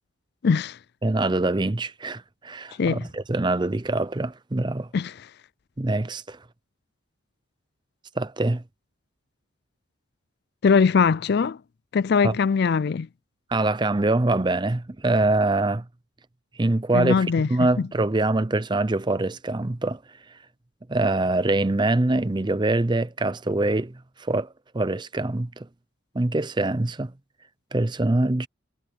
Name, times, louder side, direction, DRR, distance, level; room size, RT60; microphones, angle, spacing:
voice 1, 0.4-0.8 2.8-3.1 4.9-5.1 10.6-11.6 11.9-13.1 16.9-17.5 17.8-17.9, left 5 dB, 50° left, 0.4 m, -21 dB
voice 2, 1.0-4.9 5.8-6.4 8.2-8.6 12.2-12.3 13.5-15.8 16.6-17.2 17.5-20.0 20.9-25.7 26.1-27.1 27.7-28.5, right 2 dB, 20° right, 0.6 m, -24 dB
head